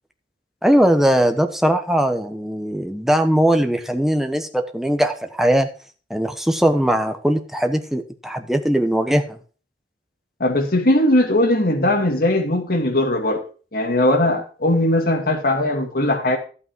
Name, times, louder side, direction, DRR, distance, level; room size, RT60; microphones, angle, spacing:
voice 1, 0.6-5.7 6.1-9.4, equal, ahead, 6 dB, 1.0 m, -19 dB
voice 2, 10.4-13.4 13.7-16.4, left 1 dB, 55° left, 2 dB, 2.4 m, -19 dB
12.0 x 8.5 x 4.6 m, 0.39 s
head